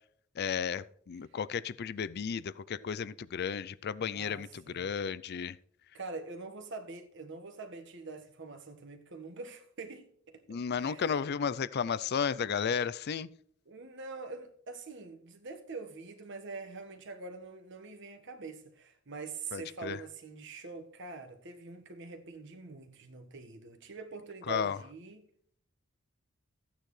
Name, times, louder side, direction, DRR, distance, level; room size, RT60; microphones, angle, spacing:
voice 1, 0.4-5.6 10.5-13.3 19.5-20.0 24.5-24.8, left 6 dB, 50° left, 0.4 m, -33 dB
voice 2, 4.1-4.9 5.9-11.2 13.6-25.3, right 4 dB, 60° right, 1.5 m, -45 dB
14.0 x 9.1 x 3.2 m
head